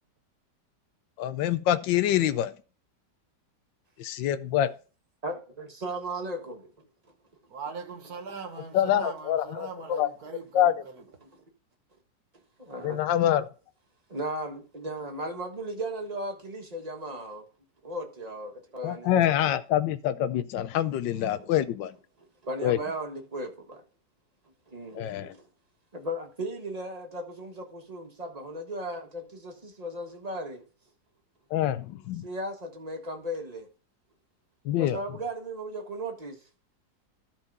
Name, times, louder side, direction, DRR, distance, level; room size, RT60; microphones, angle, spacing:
voice 1, 1.2-2.5 4.0-4.7 8.7-10.1 10.5-10.8 12.8-13.5 18.8-21.9 22.6-22.8 24.9-25.3 31.5-32.3 34.6-35.0, left 11 dB, 85° left, 1.3 m, -25 dB
voice 2, 5.2-6.9 11.2-11.4 12.6-13.0 14.1-17.5 17.8-19.4 21.1-21.5 22.4-23.8 24.7-25.5 25.9-30.6 32.2-33.7 34.8-36.4, right 1 dB, 25° right, 1.5 m, -36 dB
voice 3, 7.5-11.0, right 5 dB, 60° right, 1.8 m, -40 dB
13.0 x 4.5 x 5.3 m
omnidirectional pair, 1.9 m